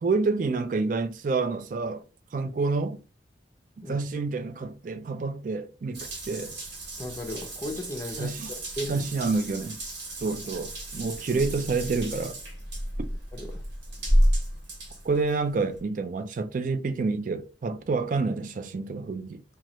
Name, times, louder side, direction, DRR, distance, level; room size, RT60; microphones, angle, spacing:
voice 1, 0.0-2.0 2.3-3.0 3.8-6.6 8.2-8.5 8.9-9.8 10.2-12.4 15.0-19.4, right 4 dB, 45° right, 0.3 m, -28 dB
Water tap faucet / Bathtub (filling or washing) / Drip, 5.9-15.8, equal, 75° right, 1.3 m, -31 dB
voice 2, 7.0-8.3 8.8-9.1 13.3-13.6, left 1 dB, 15° left, 0.5 m, -35 dB
3.0 x 2.3 x 2.8 m
head